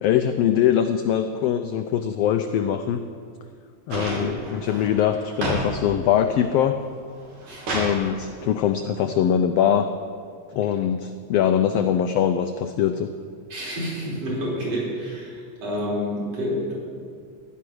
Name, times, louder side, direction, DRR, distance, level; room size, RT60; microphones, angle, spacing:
voice 1, 0.0-3.0 3.9-6.8 7.7-9.9 10.5-13.1, left 9 dB, 85° left, 7 dB, 1.4 m, -22 dB
voice 2, 3.9-4.4 7.5-7.7 13.5-16.8, equal, 55° right, -5 dB, 4.9 m, -29 dB
sound 1, 3.9-5.7 6.0-6.6 7.1-8.0 9.2-9.3, right 1 dB, 75° right, 4.2 m, -30 dB
15.0 x 10.5 x 6.2 m, 2.2 s
omnidirectional pair, 3.4 m